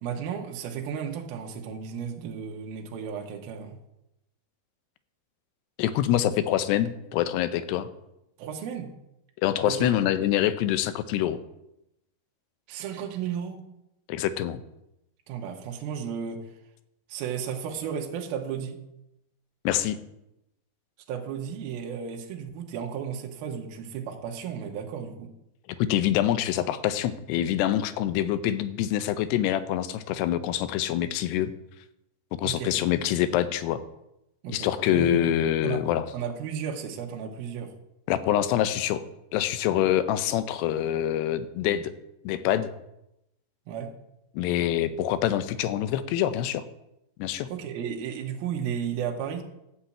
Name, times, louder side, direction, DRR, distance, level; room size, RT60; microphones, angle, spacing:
voice 1, 0.0-3.8 8.4-8.9 9.6-9.9 12.7-13.6 15.3-16.5 17.1-18.8 21.1-25.3 32.4-32.7 34.4-35.3 35.6-35.8 36.1-37.7 43.7-43.9 47.5-49.4, right 8 dB, 70° right, 2 dB, 2.9 m, -34 dB
voice 2, 5.8-7.9 9.4-11.4 14.1-14.6 19.6-20.0 25.8-31.5 32.4-33.8 34.5-36.1 38.1-39.0 39.3-41.9 42.2-42.7 44.3-46.6 47.2-47.5, left 11 dB, 85° left, 13 dB, 2.8 m, -25 dB
11.5 x 5.6 x 8.5 m, 0.86 s
omnidirectional pair, 4.7 m